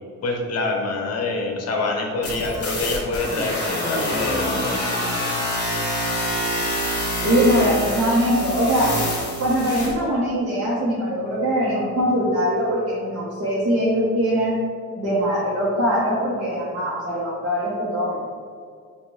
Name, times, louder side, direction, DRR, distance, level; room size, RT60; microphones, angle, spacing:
voice 1, 0.2-4.8, left 3 dB, 55° left, 1 dB, 0.8 m, -26 dB
sound 1, 2.2-9.9, equal, 35° left, 1.4 m, -26 dB
voice 2, 7.2-8.9 9.4-14.6 15.0-18.2, equal, 50° right, -9 dB, 1.1 m, -22 dB
5.2 x 2.7 x 3.2 m, 2.1 s
cardioid pair, 90°, 30 cm